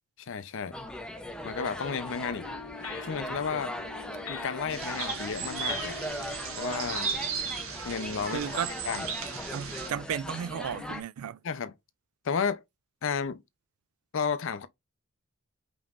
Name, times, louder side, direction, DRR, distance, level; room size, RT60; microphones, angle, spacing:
voice 1, 0.2-0.8 1.4-2.5 3.0-3.7 4.3-6.0 6.6-7.1 7.8-8.6 8.8-9.1 11.4-11.7 12.2-12.6 13.0-13.4 14.1-14.7, left 6 dB, 60° left, 0.5 m, -32 dB
sound 1, 0.7-11.0, equal, 5° left, 0.5 m, -39 dB
sound 2, 2.2-7.6, left 6 dB, 85° left, 0.8 m, -45 dB
sound 3, 4.7-9.9, right 6 dB, 70° right, 1.2 m, -36 dB
voice 2, 8.3-8.7 9.5-11.4, right 8 dB, 90° right, 0.4 m, -34 dB
5.3 x 3.0 x 2.4 m
head